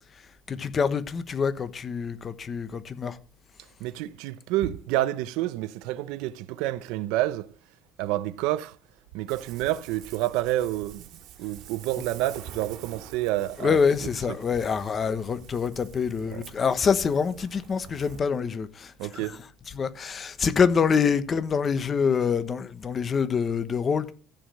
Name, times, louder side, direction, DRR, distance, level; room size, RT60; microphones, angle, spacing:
voice 1, 0.5-3.2 13.6-18.9 19.7-24.1, left 6 dB, 30° left, 1.1 m, -25 dB
voice 2, 3.8-7.5 8.0-8.8 9.1-11.0 11.4-14.1 16.3-16.4 19.0-19.4, right 15 dB, 85° right, 0.8 m, -29 dB
Ocean, 9.3-18.2, right 9 dB, 65° right, 2.1 m, -46 dB
15.0 x 5.2 x 7.7 m
cardioid pair, 135°, 0 cm